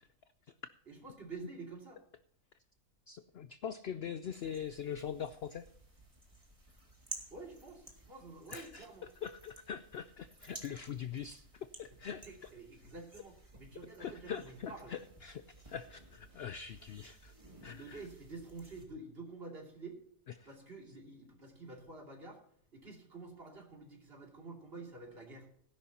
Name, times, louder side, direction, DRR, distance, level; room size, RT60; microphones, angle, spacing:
voice 1, 0.9-2.0 7.3-9.1 12.3-14.9 17.7-20.0 20.4-22.4 22.7-25.6, right 3 dB, 40° right, 0 dB, 3.0 m, -49 dB
voice 2, 3.1-5.7 8.5-8.9 9.2-12.3 14.0-17.3 17.6-18.0 20.4-20.5, left 8 dB, 70° left, 12 dB, 0.6 m, -43 dB
sound 1, 4.3-18.9, right 1 dB, 20° right, 2.2 m, -54 dB
17.5 x 10.5 x 2.9 m, 0.64 s
omnidirectional pair, 1.6 m